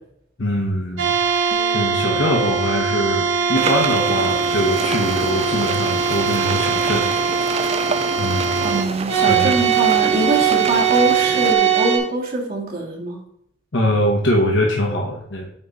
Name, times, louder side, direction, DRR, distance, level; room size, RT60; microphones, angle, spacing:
voice 1, 0.4-1.2 1.7-7.1 8.2-8.7 9.3-9.5 13.7-15.5, equal, 70° left, -1 dB, 1.2 m, -22 dB
sound 1, 1.0-12.0, right 7 dB, 75° right, 1.3 m, -20 dB
sound 2, 1.5-7.8, right 4 dB, 85° left, 1.9 m, -44 dB
sound 3, 3.5-11.5, right 5 dB, 30° right, 0.4 m, -28 dB
voice 2, 8.6-13.2, right 1 dB, 50° right, -2 dB, 2.2 m, -23 dB
8.8 x 3.7 x 4.1 m, 0.70 s
head